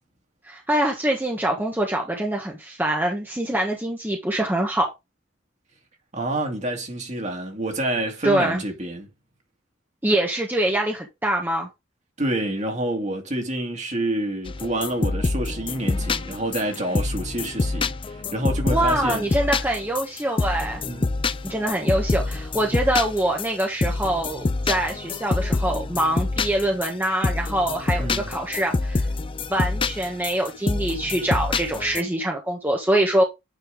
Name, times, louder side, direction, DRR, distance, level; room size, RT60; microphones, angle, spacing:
voice 1, 0.5-4.9 8.2-8.6 10.0-11.7 18.7-20.8 21.4-29.1 29.5-33.2, right 1 dB, 10° right, 1.3 m, -24 dB
voice 2, 6.1-9.1 12.2-19.3 20.8-21.2 28.0-28.3, right 1 dB, 40° right, 2.3 m, -28 dB
sound 1, 14.4-32.0, left 3 dB, 25° left, 0.4 m, -26 dB
9.4 x 4.4 x 3.6 m
head